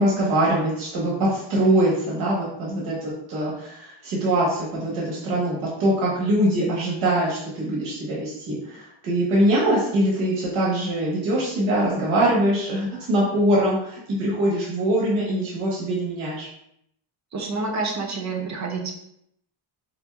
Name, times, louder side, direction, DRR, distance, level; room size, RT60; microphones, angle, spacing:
voice 1, 0.0-16.5, right 1 dB, 90° right, -5 dB, 1.2 m, -23 dB
voice 2, 17.3-18.9, right 3 dB, 35° right, 0 dB, 0.6 m, -28 dB
5.1 x 2.0 x 2.2 m, 0.75 s
cardioid pair, 140°, 48 cm